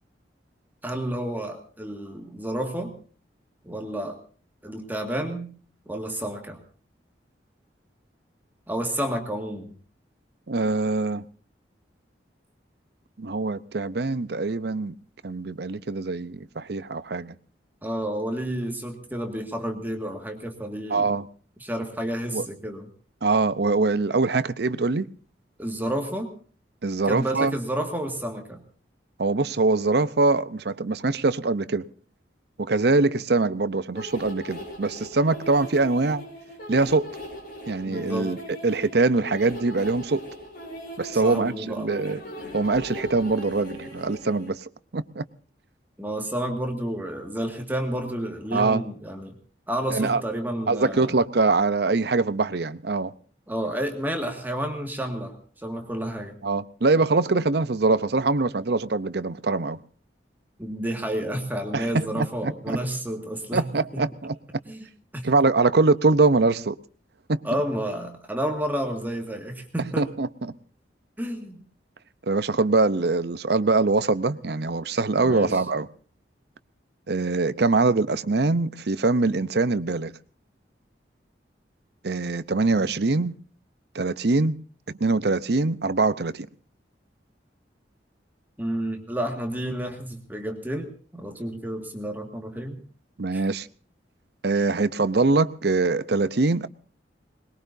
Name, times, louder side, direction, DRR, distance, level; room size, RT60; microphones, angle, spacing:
voice 1, 0.8-3.0 3.6-4.2 4.6-5.5 5.9-6.6 8.7-9.7 17.8-21.1 21.6-22.9 25.6-26.3 27.1-28.6 37.9-38.4 41.1-41.9 46.0-49.4 49.7-51.2 53.5-56.4 60.6-63.7 63.9-64.0 64.7-64.9 65.1-65.2 67.4-70.1 71.2-71.6 75.2-75.6 88.6-92.8 93.3-93.4, right 1 dB, 10° right, 4 dB, 1.9 m, -30 dB
voice 2, 10.5-11.2 13.2-14.9 15.2-17.3 20.9-21.2 22.3-22.5 23.2-25.1 26.8-27.5 29.2-31.9 32.6-36.2 36.7-37.1 37.7-38.4 38.6-40.2 41.0-42.2 42.5-45.2 48.5-48.8 49.9-50.2 50.7-53.1 56.4-59.8 61.7-61.9 62.2-62.8 63.5-64.3 65.2-66.8 67.3-67.4 70.0-70.3 72.3-75.9 77.1-80.1 82.0-83.3 83.9-84.6 85.0-86.5 93.2-93.7 94.4-96.7, right 3 dB, 65° right, 14 dB, 0.7 m, -23 dB
sound 1, 33.9-44.5, equal, 55° left, 6.2 m, -39 dB
22.0 x 21.0 x 2.7 m, 0.42 s
head